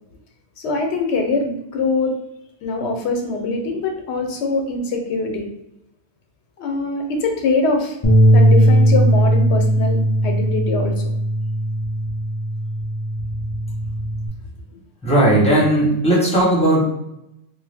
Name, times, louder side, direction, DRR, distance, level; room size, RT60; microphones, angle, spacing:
voice 1, 0.6-2.2 2.6-5.5 6.6-8.0 8.3-11.0, left 3 dB, 75° left, 3 dB, 0.9 m, -23 dB
Bass guitar, 8.0-14.3, right 1 dB, 45° left, 0.3 m, -17 dB
voice 2, 15.0-16.8, right 1 dB, 5° left, -5 dB, 1.0 m, -16 dB
2.7 x 2.3 x 3.4 m, 0.84 s
omnidirectional pair, 1.2 m